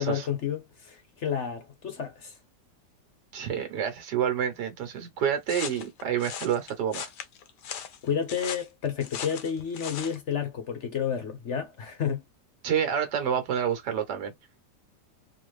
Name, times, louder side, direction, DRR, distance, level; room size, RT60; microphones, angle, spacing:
voice 1, 0.0-2.3 8.0-12.2, left 8 dB, 50° left, 1.0 m, -31 dB
voice 2, 3.3-7.1 12.6-14.3, right 8 dB, 80° right, 1.5 m, -28 dB
sound 1, 5.5-10.2, left 8 dB, 75° left, 1.3 m, -38 dB
3.9 x 2.5 x 3.2 m
omnidirectional pair, 1.8 m